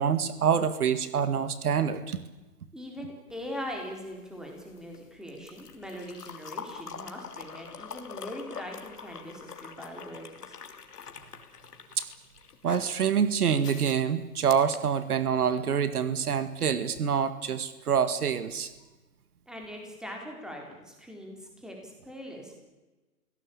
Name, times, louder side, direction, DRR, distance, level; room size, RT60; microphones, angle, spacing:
voice 1, 0.0-2.2 12.6-18.7, right 7 dB, 75° right, 12 dB, 2.0 m, -26 dB
voice 2, 2.7-10.6 19.5-22.6, equal, ahead, 1 dB, 4.1 m, -41 dB
sound 1, 3.3-15.6 16.9-17.0, left 6 dB, 85° left, 3.1 m, -45 dB
25.0 x 17.0 x 8.8 m, 1.1 s
hypercardioid pair, 155°, 45 cm